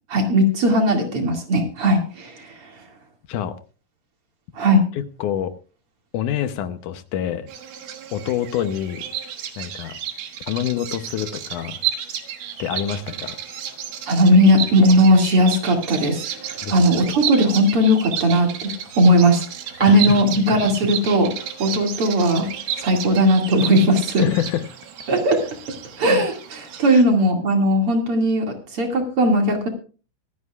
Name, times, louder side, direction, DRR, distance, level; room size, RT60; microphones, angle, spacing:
voice 1, 0.1-2.7 4.5-4.8 14.0-18.7 19.0-19.4 19.8-22.5 22.8-24.2 25.1-25.4 26.0-28.5 28.7-29.7, equal, 45° right, 2 dB, 3.0 m, -18 dB
voice 2, 5.0-5.5 6.1-7.5 8.1-9.0 9.6-10.0 10.5-11.8 12.6-13.4 16.6-16.8 19.8-20.2 24.2-24.7 26.9-27.0, left 10 dB, 75° left, 10 dB, 2.3 m, -26 dB
Bird vocalization bird call bird song, 7.5-27.0, right 9 dB, 80° right, 2.9 m, -32 dB
24.5 x 9.6 x 2.4 m, 0.36 s
omnidirectional pair, 3.6 m